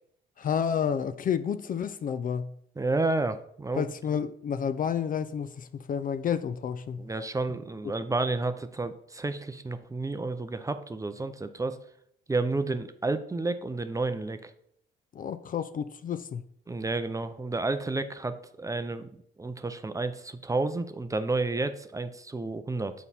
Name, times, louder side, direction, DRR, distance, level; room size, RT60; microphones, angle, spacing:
voice 1, 0.4-2.5 3.8-7.0 15.1-16.4, left 7 dB, 45° left, 0.4 m, -30 dB
voice 2, 2.8-3.9 7.0-11.8 12.3-14.5 16.7-19.1 19.4-22.9, right 3 dB, 15° right, 0.5 m, -31 dB
7.1 x 4.2 x 4.1 m
cardioid pair, 90°, 20 cm